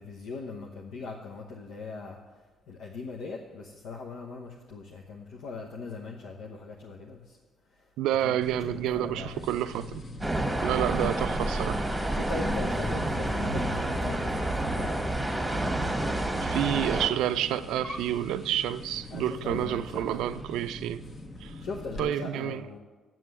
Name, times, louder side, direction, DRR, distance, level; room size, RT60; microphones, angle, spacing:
voice 1, 0.0-2.2 2.7-7.4 8.2-8.3 8.7-9.3 10.8-10.9 12.2-14.9 19.1-20.2 21.6-22.8, left 3 dB, 85° left, 0.9 m, -40 dB
voice 2, 8.0-10.0 10.6-11.9 16.4-21.1 21.4-21.5 22.0-22.7, right 12 dB, 90° right, 0.3 m, -29 dB
sound 1, 8.4-22.1, left 1 dB, 45° left, 1.4 m, -40 dB
sound 2, 10.2-17.1, right 1 dB, 10° right, 1.3 m, -29 dB
7.5 x 7.5 x 8.1 m
cardioid pair, 85°, 0 cm